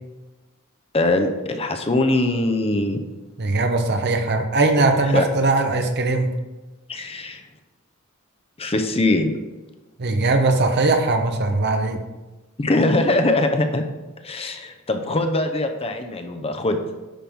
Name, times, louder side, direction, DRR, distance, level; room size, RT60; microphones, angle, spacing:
voice 1, 0.9-3.0 5.1-5.3 6.9-7.4 8.6-9.3 12.6-13.8 14.2-16.8, left 2 dB, 30° left, 5 dB, 0.8 m, -22 dB
voice 2, 3.4-6.3 10.0-12.0, right 2 dB, 50° right, 5 dB, 0.9 m, -20 dB
10.0 x 5.8 x 3.6 m, 1.1 s
head